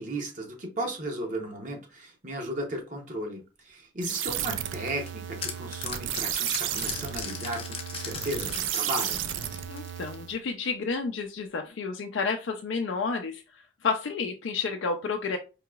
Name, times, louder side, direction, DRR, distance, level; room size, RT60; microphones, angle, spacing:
voice 1, 0.0-9.2, right 1 dB, 40° right, 2 dB, 0.8 m, -35 dB
sound 1, 4.0-10.4, right 10 dB, 80° right, 0.4 m, -33 dB
sound 2, 4.7-10.2, left 6 dB, 30° left, 0.6 m, -38 dB
voice 2, 9.7-15.4, left 4 dB, 80° left, 4 dB, 0.4 m, -31 dB
4.6 x 2.9 x 2.3 m, 0.31 s
head